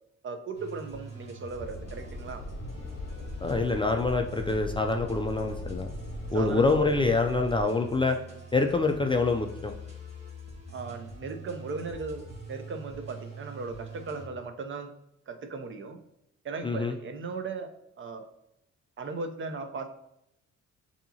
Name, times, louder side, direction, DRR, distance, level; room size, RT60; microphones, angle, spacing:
voice 1, 0.2-2.4 6.3-6.8 7.7-7.8 10.7-14.9 15.3-16.0 16.4-17.7 18.0-18.2 19.0-19.9, right 4 dB, 40° right, 7 dB, 0.6 m, -37 dB
sound 1, 0.5-14.3, right 1 dB, 20° right, 1.5 m, -44 dB
sound 2, 1.6-7.6, left 2 dB, 45° left, 0.8 m, -40 dB
voice 2, 3.4-5.9 6.3-8.2 8.5-9.7 16.6-16.9, left 3 dB, 20° left, 4 dB, 0.3 m, -26 dB
6.8 x 2.8 x 2.7 m, 0.81 s
cardioid pair, 90°, 30 cm